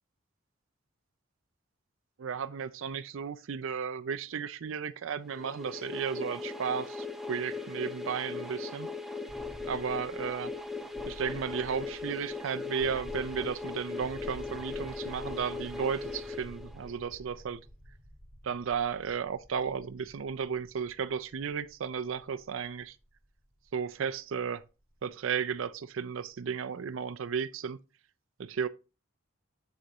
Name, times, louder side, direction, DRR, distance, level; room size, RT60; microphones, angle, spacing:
voice 1, 2.2-8.9 9.7-10.5 11.1-17.6 18.4-23.0 23.7-24.6 25.0-27.8 28.4-28.7, right 6 dB, 70° right, 0.4 m, -34 dB
sound 1, 5.3-17.1, left 4 dB, ahead, 0.5 m, -39 dB
sound 2, 9.3-25.1, equal, 15° left, 1.8 m, -51 dB
7.9 x 6.4 x 2.9 m
head